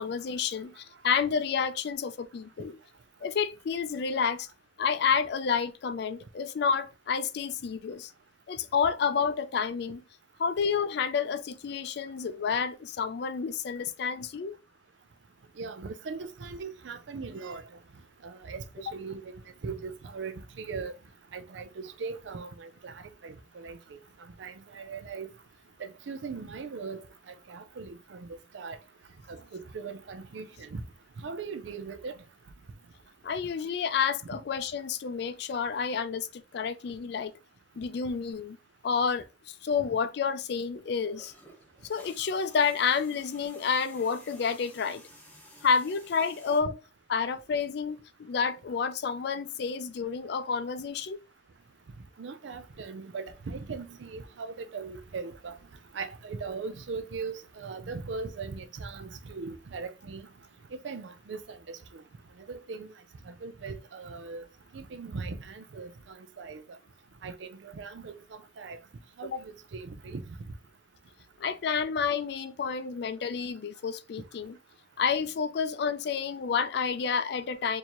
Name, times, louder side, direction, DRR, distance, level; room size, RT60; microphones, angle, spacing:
voice 1, 0.0-2.8 3.2-4.5 4.8-8.1 8.5-10.0 10.4-14.6 33.2-37.3 37.8-38.6 38.8-41.3 41.9-45.0 45.6-46.8 47.1-51.2 69.3-69.4 71.4-74.6 75.0-77.8, left 6 dB, 65° left, 0.4 m, -29 dB
voice 2, 15.6-17.6 18.2-19.3 19.6-20.9 21.3-24.0 24.4-25.3 25.8-28.8 29.3-30.8 31.2-32.1 52.2-55.6 55.9-60.3 60.7-62.0 62.5-62.9 63.3-64.5 64.7-66.6 67.2-68.8 69.2-70.2, right 4 dB, 90° right, 0.5 m, -39 dB
sound 1, 41.2-46.6, left 1 dB, 10° left, 0.8 m, -54 dB
4.5 x 2.7 x 2.9 m
head